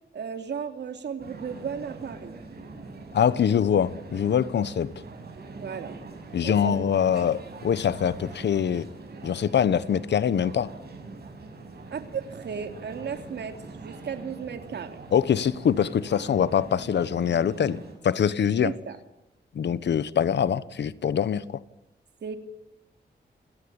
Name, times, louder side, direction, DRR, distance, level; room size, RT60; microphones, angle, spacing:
voice 1, 0.1-2.3 5.6-6.0 6.4-6.8 11.9-15.0 18.6-19.0 22.2-22.4, right 6 dB, 85° right, 2.9 m, -35 dB
sound 1, 1.2-17.9, right 3 dB, 65° right, 6.9 m, -43 dB
voice 2, 3.1-4.9 6.3-8.9 9.2-10.7 15.1-18.7 19.5-21.6, left 8 dB, 90° left, 1.1 m, -24 dB
28.0 x 18.0 x 8.8 m
wide cardioid pair, 155°, 17 cm